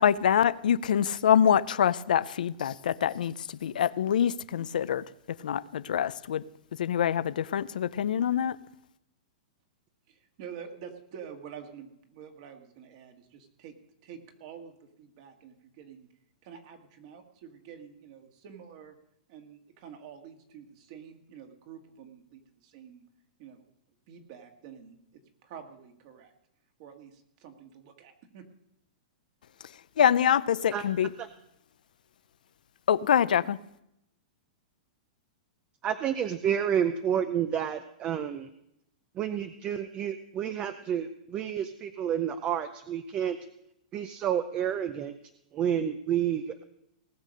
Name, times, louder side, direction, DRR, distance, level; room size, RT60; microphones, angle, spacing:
voice 1, 0.0-6.4 6.7-8.6 30.0-31.1 32.9-33.6, left 9 dB, 85° left, 16 dB, 0.5 m, -25 dB
voice 2, 10.1-13.8 14.0-16.1 16.4-19.0 19.3-23.0 23.4-23.7 24.1-26.3 26.8-28.5, right 7 dB, 45° right, 5 dB, 1.9 m, -48 dB
voice 3, 35.8-38.5 39.2-43.4 43.9-45.1 45.5-46.6, right 9 dB, 25° right, 11 dB, 0.5 m, -30 dB
19.0 x 6.7 x 6.4 m, 0.79 s
hypercardioid pair, 155°, 4 cm